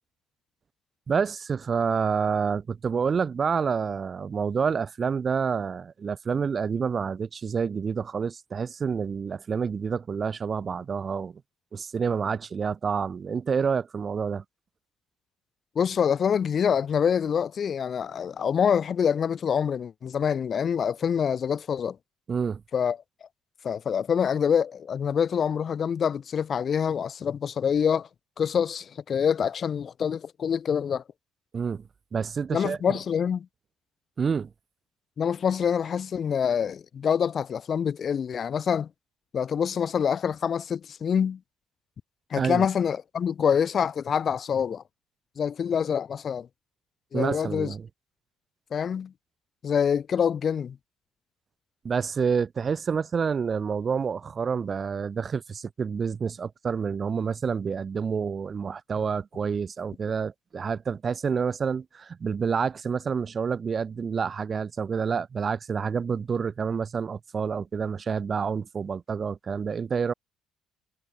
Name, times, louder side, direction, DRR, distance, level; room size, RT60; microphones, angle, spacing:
voice 1, 1.1-11.4 11.7-14.4 22.3-22.6 31.5-31.8 32.1-32.8 34.2-34.5 42.4-42.6 47.1-47.9 51.8-70.1, right 6 dB, 35° right, 0.4 m, -28 dB
voice 2, 15.7-22.0 22.7-23.0 23.6-28.1 28.4-31.0 32.5-33.5 35.2-38.9 39.3-41.4 42.3-44.8 45.4-46.5 47.1-47.7 48.7-49.1 49.6-50.8, left 7 dB, 40° left, 0.8 m, -26 dB
cardioid pair, 115°, 0 cm